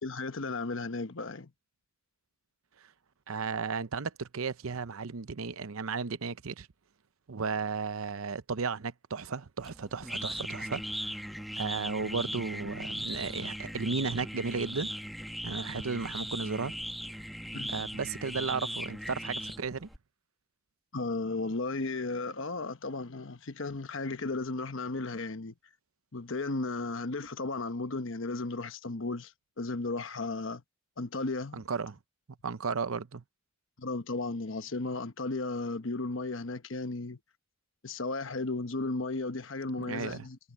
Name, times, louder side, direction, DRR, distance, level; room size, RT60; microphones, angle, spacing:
voice 1, 0.0-1.5 17.5-17.8 20.9-25.5 26.1-30.6 31.0-31.6 33.8-37.2 37.8-40.4, left 3 dB, 65° left, 1.1 m, -35 dB
voice 2, 3.3-6.7 7.3-11.3 11.6-14.9 15.4-16.7 17.7-19.9 31.5-32.0 32.4-33.2 39.8-40.3, right 5 dB, 85° right, 0.7 m, -34 dB
sound 1, 9.6-20.0, equal, ahead, 1.5 m, -38 dB
head